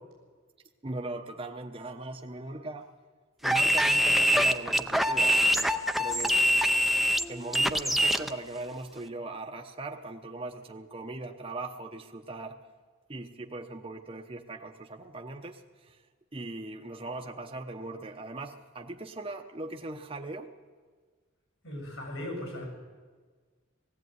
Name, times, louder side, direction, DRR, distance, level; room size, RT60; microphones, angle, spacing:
voice 1, 0.8-2.9 3.4-6.4 7.3-12.6 13.1-16.0 16.3-20.5, right 2 dB, 25° right, 4 dB, 0.8 m, -39 dB
sound 1, 3.4-8.3, equal, ahead, 0.6 m, -24 dB
voice 2, 21.6-22.6, left 1 dB, 75° left, 2 dB, 7.7 m, -37 dB
18.5 x 15.5 x 9.4 m, 1.5 s
head